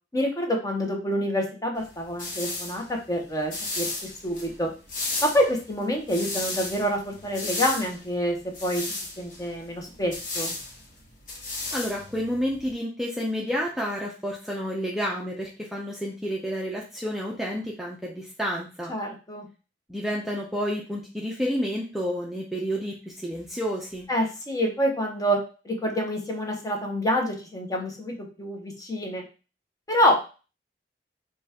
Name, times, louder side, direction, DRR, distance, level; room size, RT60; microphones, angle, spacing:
voice 1, 0.1-4.7 5.2-10.5 18.9-19.5 24.1-25.4 25.6-29.2 29.9-30.2, equal, 20° left, 1 dB, 0.9 m, -27 dB
sound 1, 1.8-12.7, left 2 dB, 50° left, 1.1 m, -35 dB
voice 2, 11.7-19.0 19.9-24.1, equal, ahead, -3 dB, 0.5 m, -30 dB
5.2 x 2.3 x 2.8 m, 0.33 s
head